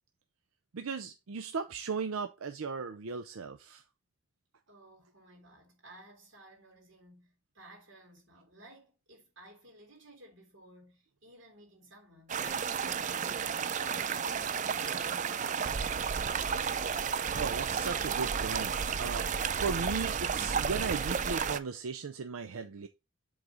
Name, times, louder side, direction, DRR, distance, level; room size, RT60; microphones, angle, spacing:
voice 1, 0.7-3.8 17.4-22.9, right 5 dB, 90° right, 0.5 m, -37 dB
voice 2, 4.7-16.8, right 1 dB, 65° right, 3.4 m, -56 dB
sound 1, 12.3-21.6, right 6 dB, 35° right, 0.4 m, -32 dB
7.8 x 4.0 x 4.8 m
head